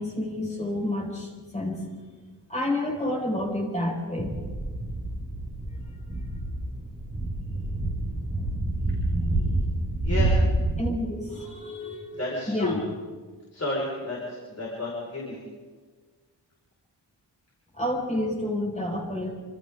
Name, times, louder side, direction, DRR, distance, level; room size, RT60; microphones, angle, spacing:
voice 1, 0.0-1.9 2.5-4.3 10.8-12.8 17.7-19.3, left 1 dB, 15° left, -2 dB, 5.6 m, -29 dB
sound 1, 4.2-10.8, right 1 dB, 20° right, 7.4 m, -28 dB
voice 2, 10.0-10.4 12.2-12.8 13.5-15.4, left 2 dB, 35° left, -4 dB, 5.6 m, -31 dB
28.0 x 27.5 x 3.9 m, 1.5 s
wide cardioid pair, 170°, 43 cm